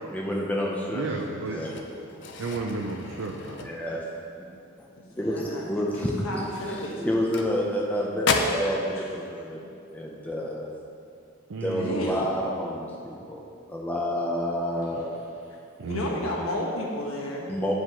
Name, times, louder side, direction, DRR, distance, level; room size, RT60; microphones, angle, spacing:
voice 1, 0.1-1.0 1.5-2.3 3.6-4.1 4.8-4.9 5.1-6.1 7.0-9.6 9.9-10.7 11.6-13.4 13.7-15.1 17.5-17.7, equal, 5° left, -3 dB, 0.7 m, -29 dB
voice 2, 0.9-1.6 2.4-3.7 11.5-12.2 15.8-16.1, right 3 dB, 70° right, 0 dB, 0.5 m, -33 dB
sound 1, 1.6-4.2 4.6-4.8 5.2-5.3 6.0-7.9 8.2-8.7, left 4 dB, 55° left, 0.5 m, -32 dB
voice 3, 5.0-5.7 6.0-7.2 9.0-9.1 9.6-9.7 11.7-12.4 15.8-17.5, left 1 dB, 85° left, -2 dB, 1.2 m, -32 dB
9.7 x 5.0 x 3.7 m, 2.5 s
head